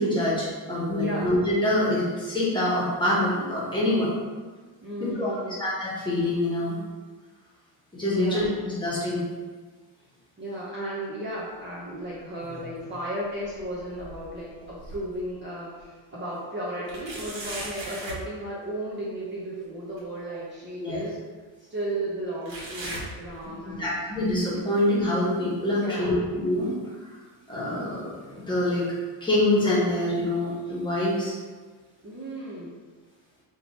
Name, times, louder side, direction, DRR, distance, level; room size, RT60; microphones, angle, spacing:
voice 1, 0.0-4.1 5.0-5.3 5.6-6.8 8.0-9.2 20.8-21.0 23.8-26.8 27.5-28.8 29.2-31.3, left 1 dB, 10° left, -8 dB, 1.2 m, -25 dB
voice 2, 1.0-1.3 4.8-5.6 8.1-8.5 10.4-21.2 21.7-24.0 24.7-24.8 25.7-26.2 32.0-32.7, right 1 dB, 25° right, -8 dB, 0.7 m, -34 dB
sound 1, 12.1-13.0 13.4-15.3 15.8-15.9 16.9-18.3 20.0-20.1 21.0-21.1 22.5-23.8 24.2-24.6 25.2-25.3 26.2-26.3, right 1 dB, 80° right, 1.5 m, -39 dB
3.6 x 2.9 x 4.2 m, 1.4 s
cardioid pair, 160°, 44 cm